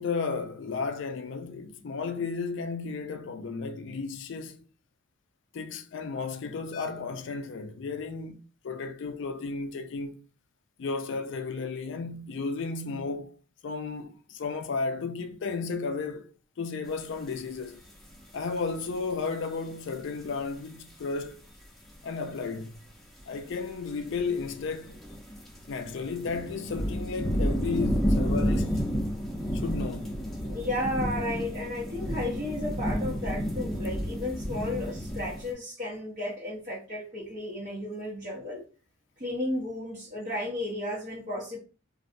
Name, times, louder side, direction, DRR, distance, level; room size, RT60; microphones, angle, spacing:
voice 1, 0.0-4.6 5.5-10.2 10.8-13.4 13.6-16.3 16.6-17.8 18.3-21.4 22.0-22.7 23.3-25.0 25.7-28.8 29.5-30.2, left 4 dB, 60° left, 0.4 m, -33 dB
sound 1, 17.3-17.4 17.9-18.4 18.7-19.3 19.9-20.0 20.2-20.5 20.8-20.9 21.2-21.3 22.0-22.1 22.3-22.4 23.2-35.5, equal, ahead, 0.8 m, -31 dB
voice 2, 30.4-38.6 39.2-41.6, left 1 dB, 35° right, 0.8 m, -33 dB
3.2 x 2.6 x 2.5 m
head